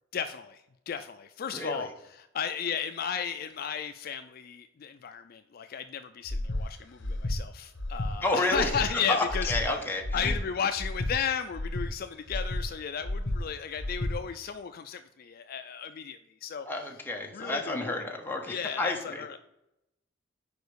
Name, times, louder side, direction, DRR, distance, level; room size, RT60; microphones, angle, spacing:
voice 1, 0.1-9.5 10.1-16.7 17.3-17.9 18.5-19.4, left 7 dB, 50° left, 8 dB, 0.4 m, -34 dB
voice 2, 1.5-1.9 8.2-10.3 16.6-19.2, left 2 dB, 10° left, 1 dB, 1.0 m, -30 dB
Breathing, 6.2-6.6 7.0-7.4 7.7-8.1 8.5-8.9 9.3-9.6 10.0-10.4 10.8-11.1 11.5-11.9 12.3-12.6 13.0-13.4 13.8-14.1, left 1 dB, 65° left, 1.1 m, -31 dB
5.1 x 4.7 x 6.2 m, 0.86 s
head